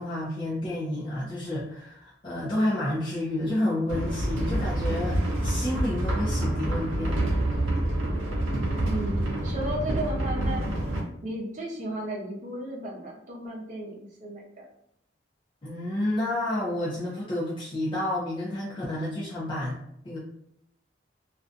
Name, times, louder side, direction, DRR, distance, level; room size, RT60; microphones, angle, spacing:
voice 1, 0.0-7.2 15.6-20.2, left 1 dB, 25° left, -8 dB, 0.5 m, -30 dB
sound 1, 3.9-11.0, right 1 dB, 85° right, 0.6 m, -27 dB
voice 2, 8.8-10.7 11.2-14.7, right 1 dB, 40° right, -3 dB, 0.7 m, -34 dB
2.5 x 2.2 x 2.5 m, 0.74 s
head